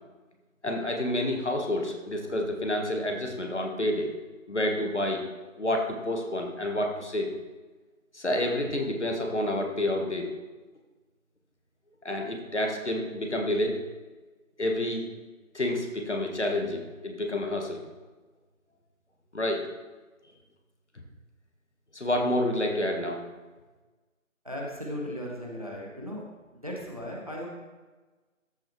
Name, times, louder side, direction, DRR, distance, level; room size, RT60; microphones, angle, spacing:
voice 1, 0.6-4.1 4.5-5.2 5.6-7.3 8.1-10.3 12.0-13.8 14.6-15.1 15.5-17.8 19.3-19.7 21.9-23.2, left 1 dB, 55° left, 2 dB, 1.5 m, -29 dB
voice 2, 24.4-26.2 26.5-27.5, equal, 25° right, -2 dB, 1.1 m, -36 dB
13.5 x 6.3 x 3.1 m, 1.3 s
figure-of-eight pair, 165°, 42 cm